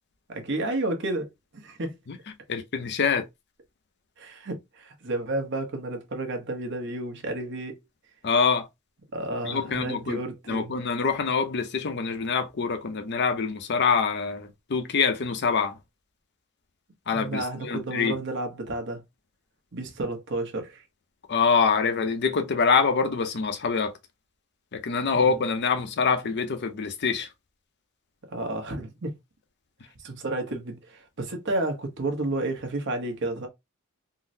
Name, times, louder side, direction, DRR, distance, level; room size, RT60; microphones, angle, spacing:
voice 1, 0.3-1.3 1.5-2.0 4.2-7.8 9.1-10.7 17.1-19.0 19.7-20.8 25.3-25.4 28.3-29.1 30.0-33.5, right 2 dB, 60° right, 0.9 m, -31 dB
voice 2, 2.5-3.3 8.2-8.7 9.4-10.2 10.5-15.8 17.1-18.1 21.3-23.9 24.7-27.3, left 5 dB, 55° left, 0.6 m, -25 dB
3.8 x 2.0 x 2.6 m
head